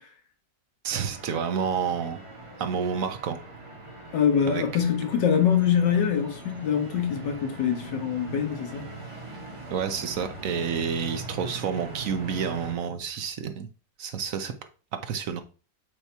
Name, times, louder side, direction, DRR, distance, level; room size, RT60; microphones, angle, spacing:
voice 1, 0.8-2.2 2.6-3.4 4.5-4.6 9.7-13.7 14.0-14.5 15.0-15.4, right 7 dB, 60° right, 0.9 m, -29 dB
sound 1, 1.1-12.7, right 2 dB, 20° right, 1.2 m, -41 dB
voice 2, 4.1-8.9, left 8 dB, 75° left, 1.8 m, -24 dB
8.2 x 2.8 x 4.5 m
omnidirectional pair, 1.9 m